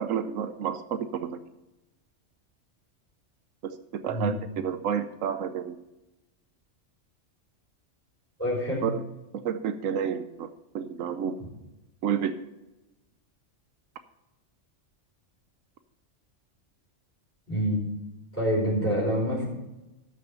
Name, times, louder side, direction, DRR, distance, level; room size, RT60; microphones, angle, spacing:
voice 1, 0.0-1.4 3.6-5.8 8.8-9.0 9.4-10.5 10.7-11.4 12.0-12.4, right 8 dB, 85° right, 10 dB, 1.1 m, -30 dB
voice 2, 8.4-8.8 17.5-17.8 18.3-19.4, equal, 10° left, -7 dB, 4.9 m, -26 dB
13.0 x 6.4 x 5.6 m, 0.99 s
omnidirectional pair, 1.3 m